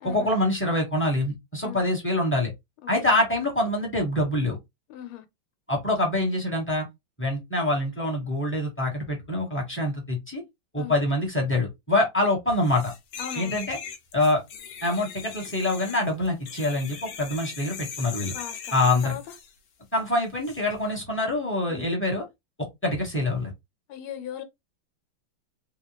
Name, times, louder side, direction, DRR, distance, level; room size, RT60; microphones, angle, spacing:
voice 1, 0.0-2.5 2.9-4.6 5.7-6.8 7.2-10.4 10.7-12.9 13.4-13.8 14.1-14.4 14.8-18.3 18.7-19.1 19.9-22.2 22.8-23.5, left 1 dB, 10° left, 0.8 m, -25 dB
voice 2, 2.8-3.1 4.9-5.2 10.8-10.9 13.2-13.7 18.3-19.2 21.7-21.8 23.9-24.4, left 10 dB, 85° left, 1.5 m, -38 dB
sound 1, 12.6-19.5 20.4-20.6, left 7 dB, 65° left, 1.2 m, -40 dB
3.7 x 2.3 x 3.0 m
omnidirectional pair, 2.3 m